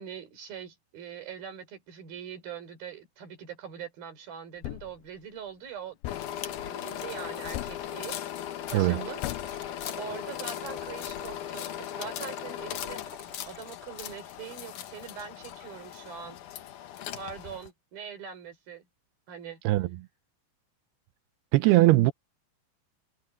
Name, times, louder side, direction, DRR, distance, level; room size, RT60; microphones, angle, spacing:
voice 1, 0.0-6.0 6.4-8.2 8.7-9.6 9.9-13.0 13.5-16.4 17.2-18.8 19.3-19.6 21.7-21.8, right 7 dB, 55° right, 5.9 m, -42 dB
Thump thud, 4.6-5.0 6.0-6.4 7.5-7.9 9.2-9.6, left 16 dB, 90° left, 2.1 m, -37 dB
sound 1, 6.0-17.7, left 11 dB, 70° left, 1.9 m, -38 dB
voice 2, 8.7-9.1 19.6-19.9 21.5-22.1, right 18 dB, 80° right, 2.4 m, -20 dB
Trickle dribble / Fill (with liquid), 8.9-16.2, left 4 dB, 25° left, 3.3 m, -51 dB
omnidirectional pair, 5.2 m